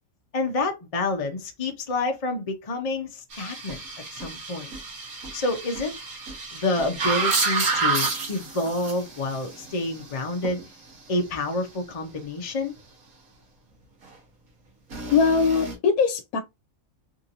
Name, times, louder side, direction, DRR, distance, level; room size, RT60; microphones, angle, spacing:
voice 1, 0.3-3.8 4.1-4.7 5.3-5.9 6.5-10.6 11.1-12.7, left 2 dB, 50° left, 0.4 m, -28 dB
sound 1, 3.3-10.6 14.9-15.8, right 4 dB, 85° right, 1.6 m, -30 dB
voice 2, 15.1-16.4, left 5 dB, 85° left, 1.0 m, -21 dB
3.6 x 2.6 x 2.7 m
omnidirectional pair, 1.5 m